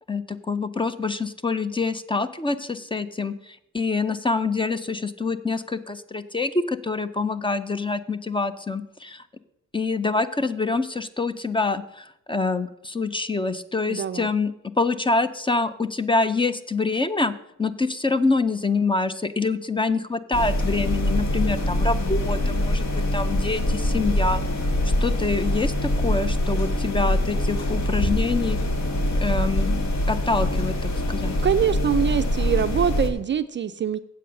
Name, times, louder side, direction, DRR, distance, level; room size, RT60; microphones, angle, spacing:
voice 1, 0.1-9.2 9.7-14.5 14.8-17.3 17.6-24.4 24.8-28.6 29.2-29.8 30.1-31.4, left 3 dB, 15° left, 13 dB, 0.5 m, -26 dB
voice 2, 13.9-14.3 31.4-34.0, right 8 dB, 35° right, 11 dB, 0.4 m, -24 dB
sound 1, 20.3-33.1, left 1 dB, 55° left, 1.5 m, -24 dB
8.4 x 7.7 x 6.4 m, 0.79 s
cardioid pair, 110°, 32 cm